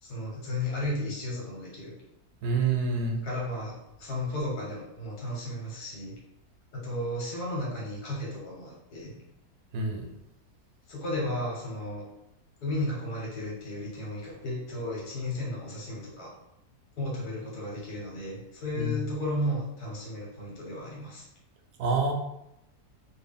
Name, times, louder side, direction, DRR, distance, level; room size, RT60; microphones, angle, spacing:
voice 1, 0.0-1.9 3.2-6.1 6.7-9.1 10.9-12.1 12.6-16.3 17.0-21.3, left 1 dB, 80° left, -4 dB, 1.7 m, -34 dB
voice 2, 2.4-3.2 9.7-10.0 18.8-18.9 21.8-22.1, right 4 dB, 90° right, 2 dB, 1.2 m, -27 dB
3.3 x 2.4 x 3.5 m, 0.85 s
omnidirectional pair, 1.7 m